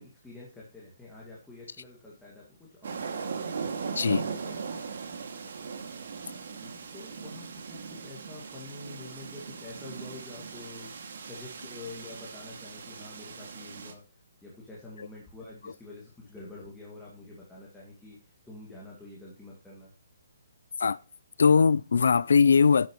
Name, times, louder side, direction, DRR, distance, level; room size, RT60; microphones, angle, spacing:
voice 1, 0.0-3.4 4.4-4.6 4.9-5.5 6.2-10.9 11.2-14.0 14.4-18.2 18.5-19.9, left 2 dB, 5° left, 2.2 m, -47 dB
sound 1, 2.8-13.9, right 5 dB, 55° right, 2.3 m, -39 dB
voice 2, 21.4-22.9, left 5 dB, 70° left, 0.5 m, -20 dB
12.0 x 9.2 x 3.1 m
hypercardioid pair, 170°, 0 cm